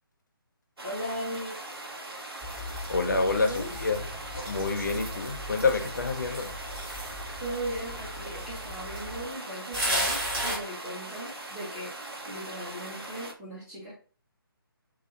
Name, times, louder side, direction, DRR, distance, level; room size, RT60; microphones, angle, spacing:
voice 1, 0.8-1.6 3.2-3.7 7.4-11.9 12.2-14.0, equal, ahead, 0.5 m, -38 dB
sound 1, 0.8-13.3, right 2 dB, 80° right, 0.6 m, -41 dB
sound 2, 2.4-9.2 9.7-10.6, equal, 20° right, 0.8 m, -35 dB
voice 2, 2.9-4.0 4.5-6.5, left 3 dB, 50° left, 0.6 m, -27 dB
2.3 x 2.1 x 2.7 m
figure-of-eight pair, 150°, 12 cm